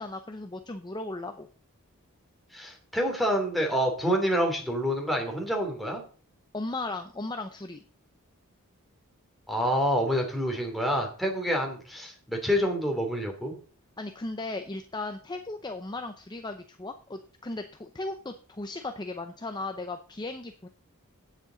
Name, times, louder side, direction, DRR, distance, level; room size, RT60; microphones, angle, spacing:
voice 1, 0.0-1.5 6.5-7.8 14.0-20.7, left 2 dB, 20° left, 7 dB, 0.7 m, -36 dB
voice 2, 2.5-6.0 9.5-13.5, equal, ahead, 1 dB, 2.8 m, -27 dB
17.0 x 7.5 x 4.0 m, 0.40 s
head